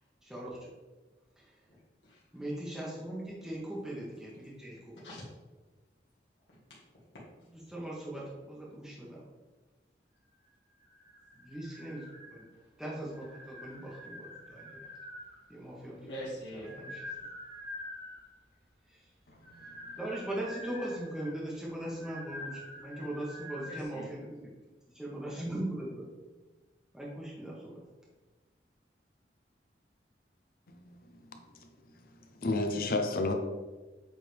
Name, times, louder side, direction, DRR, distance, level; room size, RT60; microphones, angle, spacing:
voice 1, 0.2-0.7 1.4-1.5 2.3-4.9 7.7-9.3 11.3-12.0 12.3-12.5 12.8-14.9 15.5-16.1 16.5-17.3 18.9-19.1 20.0-24.4 24.9-26.1 26.9-27.8, right 1 dB, 5° right, -6 dB, 1.2 m, -40 dB
voice 2, 1.7-2.2 5.0-5.2 6.7-6.8 16.0-16.7 23.7-24.1, equal, 85° left, -7 dB, 1.7 m, -44 dB
sound 1, 10.8-12.6 13.1-15.5 16.3-18.4 19.3-23.8, left 1 dB, 60° right, 1.8 m, -46 dB
voice 3, 19.4-20.0 30.7-31.7 32.4-33.3, left 2 dB, 55° left, 5 dB, 0.7 m, -33 dB
7.9 x 3.7 x 3.4 m, 1.2 s
head